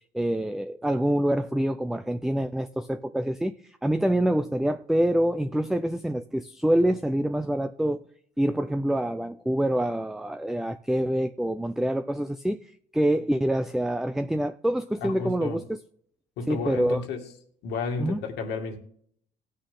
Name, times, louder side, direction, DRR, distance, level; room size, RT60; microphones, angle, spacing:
voice 1, 0.1-8.0 8.4-12.6 12.9-15.8 16.5-17.0 18.0-18.2, right 1 dB, ahead, 0.5 m, -26 dB
voice 2, 15.0-15.6 16.4-17.2 17.6-18.8, left 4 dB, 85° left, 2.3 m, -32 dB
17.5 x 6.5 x 3.8 m
cardioid pair, 110°, 17 cm